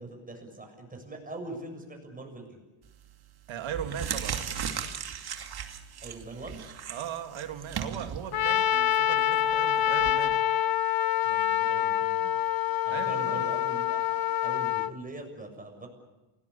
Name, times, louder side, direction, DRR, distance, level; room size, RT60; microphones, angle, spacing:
voice 1, 0.0-2.6 6.0-6.6 11.2-12.3 12.8-15.9, right 2 dB, 15° right, 3 dB, 7.1 m, -42 dB
sound 1, 2.9-3.2 3.6-10.1, right 8 dB, 50° right, 2.6 m, -37 dB
voice 2, 3.5-4.4 6.9-10.4 12.9-13.5, right 8 dB, 70° right, 7 dB, 2.5 m, -38 dB
Trumpet, 8.3-14.9, left 10 dB, 50° left, 0.9 m, -26 dB
28.5 x 19.5 x 8.5 m, 1.1 s
cardioid pair, 125°, 47 cm